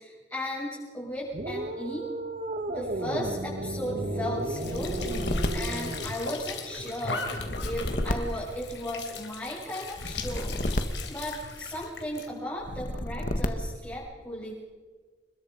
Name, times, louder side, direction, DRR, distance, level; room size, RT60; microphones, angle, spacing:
voice 1, 0.0-2.1 2.7-10.6 10.8-14.5, equal, 15° left, -7 dB, 7.5 m, -36 dB
sound 1, 1.3-6.1, right 1 dB, 50° right, 2.0 m, -33 dB
Squeak / Sink (filling or washing) / Trickle dribble, 4.4-12.3, left 4 dB, 90° left, 3.9 m, -38 dB
sound 2, 4.6-6.6 7.3-9.2 9.9-11.9 12.6-13.9, left 1 dB, 50° left, 1.7 m, -32 dB
29.5 x 21.5 x 5.3 m, 1.5 s
head